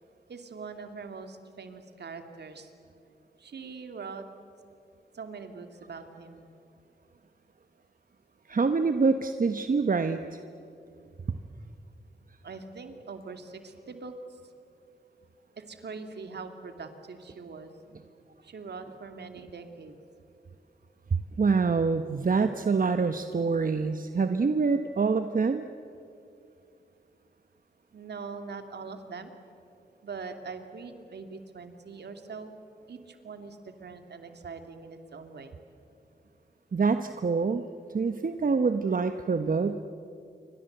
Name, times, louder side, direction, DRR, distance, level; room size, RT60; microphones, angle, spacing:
voice 1, 0.3-2.7 3.4-4.3 5.1-6.5 12.4-14.4 15.6-17.7 18.4-19.9 27.9-29.3 30.0-32.5 32.9-35.6, right 4 dB, 70° right, 7 dB, 2.6 m, -42 dB
voice 2, 8.5-10.4 21.4-25.6 36.7-37.6 37.9-39.7, right 4 dB, 50° right, 8 dB, 1.2 m, -26 dB
28.0 x 24.5 x 8.0 m, 2.6 s
cardioid pair, 45°, 18 cm